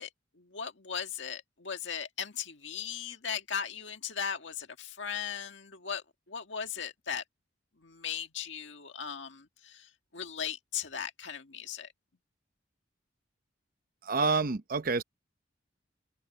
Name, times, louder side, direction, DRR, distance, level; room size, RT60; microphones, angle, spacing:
voice 1, 0.0-7.2 7.8-11.9, left 7 dB, 70° left, 1.9 m, -38 dB
voice 2, 14.0-15.0, right 4 dB, 50° right, 0.8 m, -28 dB
head